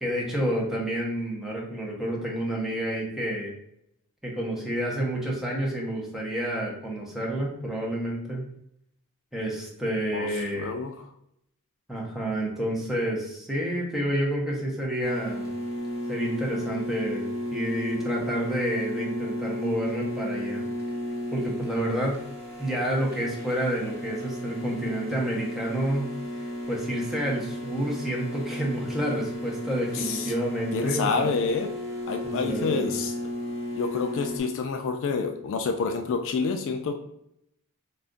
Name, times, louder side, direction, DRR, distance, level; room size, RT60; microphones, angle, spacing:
voice 1, 0.0-3.5 4.2-8.4 9.3-10.8 11.9-15.5 16.1-20.7 21.3-22.2 22.6-26.1 26.7-31.3 32.2-32.9, right 1 dB, ahead, -3 dB, 0.7 m, -29 dB
voice 2, 10.6-10.9 29.9-30.3 30.7-31.7 32.1-33.1 33.7-36.9, left 4 dB, 60° left, 4 dB, 0.3 m, -28 dB
sound 1, 15.0-34.4, left 1 dB, 45° right, 0.7 m, -33 dB
2.4 x 2.3 x 3.7 m, 0.76 s
head